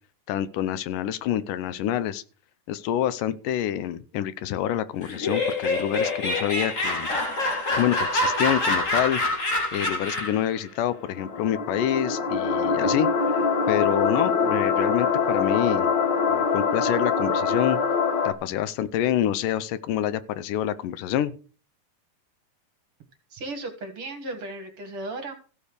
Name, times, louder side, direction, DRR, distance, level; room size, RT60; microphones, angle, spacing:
voice 1, 0.3-2.2 2.7-7.2 7.8-9.2 9.7-15.9 16.3-17.8 18.2-21.3, left 11 dB, 85° left, 2.4 m, -27 dB
Laughter, 5.0-10.5, left 2 dB, 25° left, 2.3 m, -26 dB
sound 1, 11.0-18.3, left 5 dB, 55° left, 1.3 m, -24 dB
voice 2, 23.3-25.3, right 2 dB, 50° right, 2.2 m, -35 dB
15.0 x 5.5 x 6.6 m
omnidirectional pair, 3.7 m